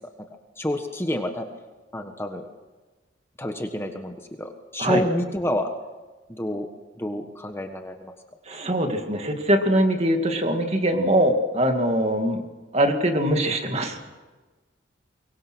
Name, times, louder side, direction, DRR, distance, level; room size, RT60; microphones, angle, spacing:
voice 1, 0.6-1.5 1.9-2.5 3.4-5.7 6.3-6.7 7.0-8.1, left 1 dB, 15° left, 5 dB, 1.4 m, -28 dB
voice 2, 8.5-12.4 12.7-14.0, right 1 dB, 35° right, 4 dB, 2.4 m, -22 dB
24.5 x 23.0 x 6.3 m, 1.3 s
head